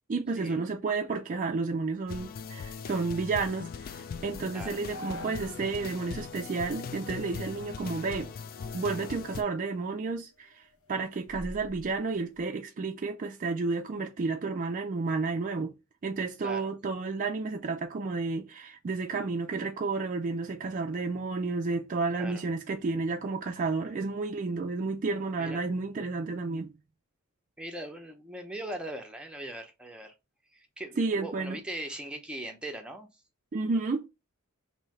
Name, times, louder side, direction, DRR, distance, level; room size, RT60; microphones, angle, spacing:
voice 1, 0.1-8.3 8.7-15.7 16.0-26.7 31.0-31.6 33.5-34.1, right 4 dB, 35° right, 0.4 m, -31 dB
sound 1, 1.3-5.7 6.1-6.2 6.8-7.2 7.5-9.6 10.0-12.4, left 1 dB, 80° left, 1.0 m, -49 dB
sound 2, 2.1-9.4, left 6 dB, 45° left, 0.3 m, -40 dB
voice 2, 27.6-30.1 30.5-33.1, right 1 dB, 5° right, 0.7 m, -40 dB
3.1 x 2.8 x 4.5 m
head